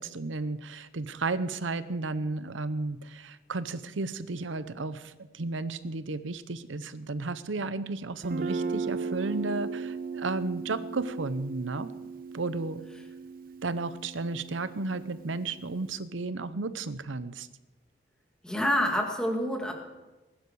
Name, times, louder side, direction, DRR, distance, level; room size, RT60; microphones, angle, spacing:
voice 1, 0.0-11.9 12.3-12.8 13.6-17.5, right 3 dB, 80° right, 14 dB, 0.8 m, -33 dB
Guitar, 8.2-15.9, right 5 dB, 50° right, 0.6 m, -37 dB
voice 2, 18.4-19.7, equal, 5° left, 1 dB, 2.3 m, -27 dB
20.5 x 11.5 x 4.8 m, 1.1 s
head